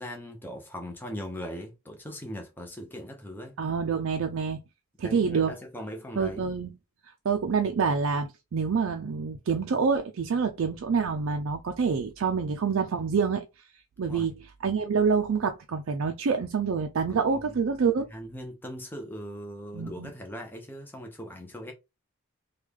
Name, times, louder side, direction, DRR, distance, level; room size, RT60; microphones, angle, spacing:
voice 1, 0.0-3.6 5.0-6.5 14.1-14.3 17.1-17.6 18.1-21.7, equal, 10° left, 0.6 m, -40 dB
voice 2, 3.6-4.6 5.0-5.5 6.2-6.7 7.2-13.5 14.0-18.1 19.7-20.1, right 5 dB, 65° right, 0.4 m, -27 dB
3.1 x 2.3 x 3.5 m
head